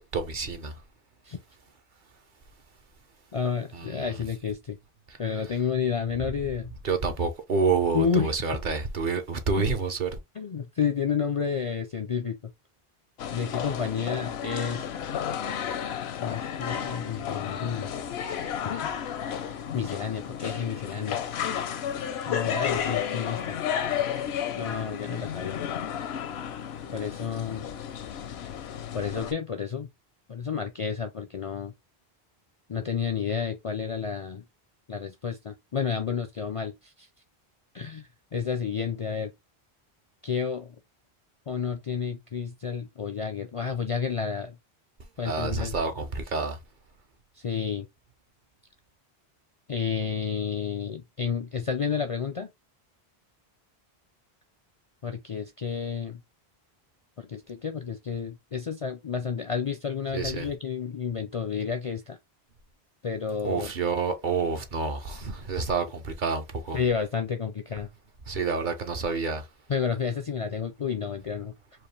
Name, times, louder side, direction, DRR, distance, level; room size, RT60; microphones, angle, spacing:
voice 1, 0.1-0.7 3.7-4.2 6.8-10.1 45.2-46.6 60.1-60.5 63.4-66.8 68.3-69.4, right 4 dB, 55° right, 0.9 m, -28 dB
voice 2, 3.3-4.8 5.2-6.7 7.9-8.3 9.6-9.7 10.4-12.4 13.3-14.9 16.2-17.9 18.6-19.0 19.7-21.2 22.3-23.6 24.5-25.6 26.9-27.7 28.9-29.9 30.3-31.7 32.7-34.4 34.9-37.1 37.7-39.3 40.2-40.8 41.5-44.6 45.2-45.7 47.4-47.9 49.7-52.5 55.0-56.2 57.2-62.2 63.0-63.7 66.7-67.9 69.7-71.5, left 6 dB, 45° left, 0.4 m, -30 dB
sound 1, 13.2-29.3, left 8 dB, 80° left, 0.9 m, -32 dB
4.7 x 2.4 x 3.2 m
omnidirectional pair, 1.1 m